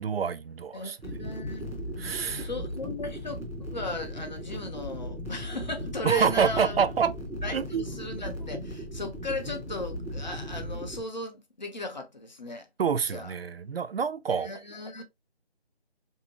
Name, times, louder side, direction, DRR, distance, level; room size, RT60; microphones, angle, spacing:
voice 1, 0.0-1.0 2.0-2.5 6.0-7.1 7.5-7.8 12.8-14.5, right 6 dB, 65° right, 0.5 m, -27 dB
voice 2, 0.7-1.7 2.4-3.4 3.7-6.8 7.4-12.7 13.1-13.3 14.3-15.0, left 2 dB, 45° left, 0.7 m, -37 dB
sound 1, 1.0-11.0, equal, 10° right, 0.9 m, -37 dB
3.4 x 2.8 x 2.9 m
figure-of-eight pair, 170°, 32 cm